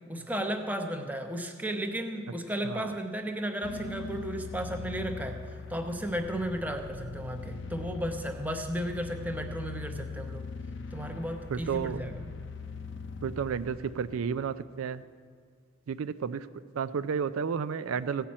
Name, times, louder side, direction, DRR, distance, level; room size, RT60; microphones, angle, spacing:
voice 1, 0.1-10.5 10.9-12.3, equal, 10° right, 5 dB, 0.8 m, -34 dB
sound 1, 3.6-14.2, left 4 dB, 55° left, 0.6 m, -41 dB
voice 2, 11.7-12.0 13.2-15.0 15.9-16.4 16.8-18.3, right 6 dB, 80° right, 12 dB, 0.4 m, -31 dB
16.0 x 5.7 x 8.6 m, 2.1 s
head